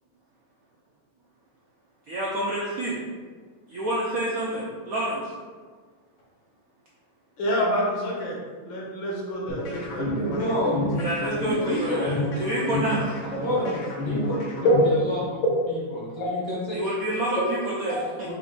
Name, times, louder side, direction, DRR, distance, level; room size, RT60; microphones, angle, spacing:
voice 1, 2.1-3.0 3.7-5.3 11.0-13.2 16.7-18.3, right 1 dB, 75° right, -5 dB, 0.8 m, -28 dB
voice 2, 7.4-8.4 8.6-10.4 14.6-14.8 16.2-16.3 17.9-18.0, equal, 70° left, -4 dB, 1.8 m, -26 dB
sound 1, 9.5-15.5, left 1 dB, 85° left, 1.7 m, -29 dB
voice 3, 10.3-10.8 11.4-12.2 13.2-14.3 14.8-16.8 18.2-18.3, equal, 30° left, -7 dB, 0.5 m, -30 dB
4.7 x 2.4 x 3.7 m, 1.5 s
omnidirectional pair, 2.2 m